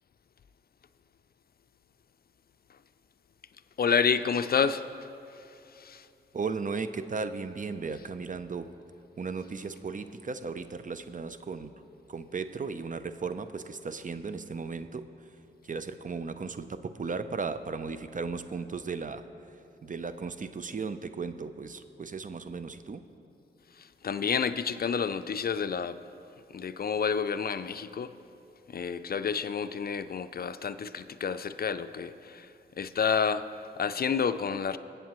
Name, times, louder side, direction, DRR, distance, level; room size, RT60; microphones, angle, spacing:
voice 1, 3.8-4.9 5.3-5.4 5.7-6.1 23.7-26.0 26.5-28.1 28.7-32.5 32.8-34.8, left 6 dB, 50° left, 12 dB, 0.4 m, -29 dB
voice 2, 6.3-8.7 9.2-11.7 12.1-15.1 15.6-19.3 19.8-23.0, right 4 dB, 45° right, 11 dB, 0.6 m, -36 dB
21.0 x 8.1 x 3.1 m, 2.7 s
cardioid pair, 45°, 20 cm